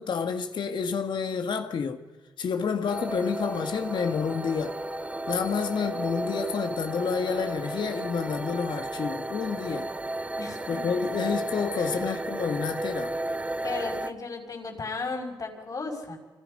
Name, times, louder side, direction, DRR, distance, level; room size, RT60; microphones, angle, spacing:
voice 1, 0.0-2.0 2.4-4.8 5.3-9.9 10.7-13.2, left 6 dB, 75° left, 2.1 m, -29 dB
sound 1, 2.9-14.1, right 1 dB, 15° right, 1.1 m, -33 dB
voice 2, 10.4-10.8 11.8-12.1 13.6-16.2, left 3 dB, 50° left, 6.0 m, -35 dB
29.0 x 26.0 x 5.5 m
cardioid pair, 90°, 8 cm